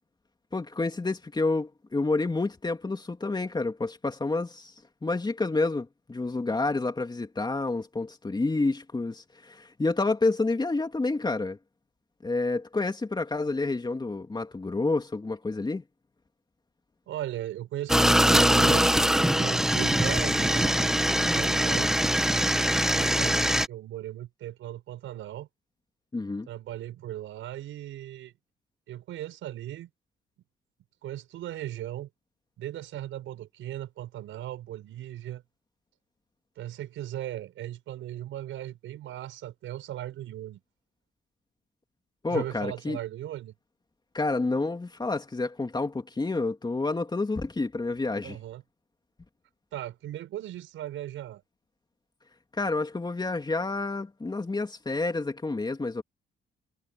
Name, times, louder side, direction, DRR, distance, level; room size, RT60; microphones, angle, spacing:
voice 1, 0.5-4.7 5.0-11.6 12.2-15.8 26.1-26.5 42.2-43.0 44.1-48.4 52.6-56.0, left 3 dB, 20° left, 3.1 m, -29 dB
voice 2, 17.1-21.9 22.9-25.5 26.5-28.3 28.9-29.9 31.0-32.1 32.6-35.4 36.6-40.6 42.3-43.5 48.2-48.6 49.7-51.4, right 13 dB, 85° right, 6.8 m, -37 dB
sound 1, 17.9-23.7, equal, ahead, 1.0 m, -22 dB
cardioid pair, 90°, 20 cm